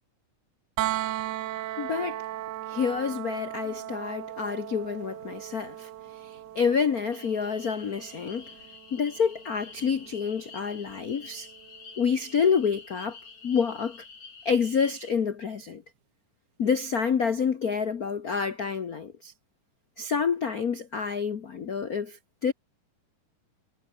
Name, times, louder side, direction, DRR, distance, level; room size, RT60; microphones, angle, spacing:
sound 1, 0.8-12.6 14.5-14.6, right 13 dB, 80° right, 2.6 m, -38 dB
voice 1, 1.8-2.2 2.7-8.5 8.9-11.5 12.0-13.2 13.4-14.0 14.4-15.8 16.6-19.3 20.0-22.5, left 6 dB, 85° left, 0.8 m, -28 dB
sound 2, 7.1-15.1, left 5 dB, 50° left, 5.2 m, -48 dB
omnidirectional pair, 3.5 m